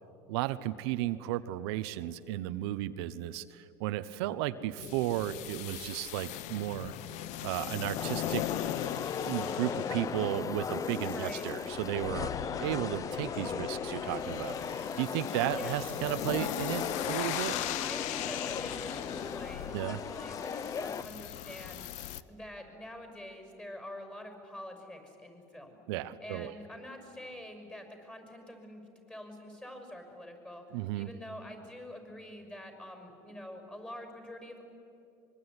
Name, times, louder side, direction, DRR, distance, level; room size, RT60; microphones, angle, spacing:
voice 1, 0.3-6.9 7.4-8.4 9.2-12.3 12.6-17.6 19.7-20.0 25.9-26.5 30.7-31.1, right 14 dB, 80° right, 11 dB, 0.9 m, -34 dB
sound 1, 4.8-22.2, left 13 dB, 65° left, 0.9 m, -39 dB
sound 2, 7.9-21.0, left 6 dB, 25° left, 0.7 m, -37 dB
voice 2, 11.1-11.4 15.5-15.8 17.8-25.8 26.2-28.8 29.1-34.7, left 1 dB, 10° left, 5 dB, 6.0 m, -46 dB
25.0 x 22.5 x 9.8 m, 2.9 s
supercardioid pair, 120°, 13 cm